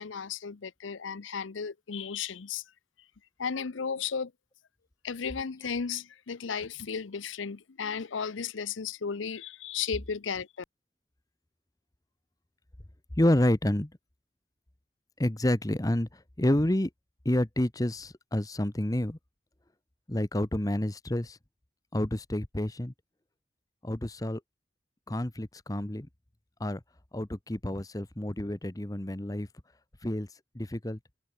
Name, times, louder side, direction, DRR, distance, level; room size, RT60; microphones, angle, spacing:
voice 1, 0.0-2.6 3.4-4.3 5.0-10.6, left 6 dB, 90° left, 0.7 m, -34 dB
voice 2, 13.2-13.9 15.2-16.9 17.2-19.2 20.1-21.4 21.9-22.9 23.8-24.4 25.1-26.1 26.6-26.8 27.1-29.5 30.0-30.3 30.5-31.0, left 1 dB, 20° left, 0.9 m, -29 dB
head